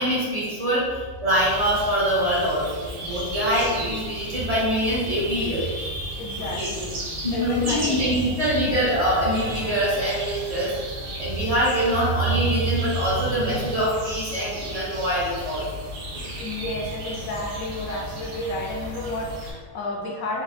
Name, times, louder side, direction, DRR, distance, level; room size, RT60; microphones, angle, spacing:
voice 1, 0.0-6.7 7.2-10.7 11.2-15.7 16.1-16.3, right 1 dB, 50° right, -8 dB, 0.4 m, -24 dB
sound 1, 1.3-19.5, equal, 70° right, 1.1 m, -36 dB
voice 2, 6.1-8.1 16.4-20.4, left 2 dB, 75° left, 0 dB, 1.0 m, -31 dB
3.8 x 2.4 x 2.6 m, 1.5 s
omnidirectional pair, 1.5 m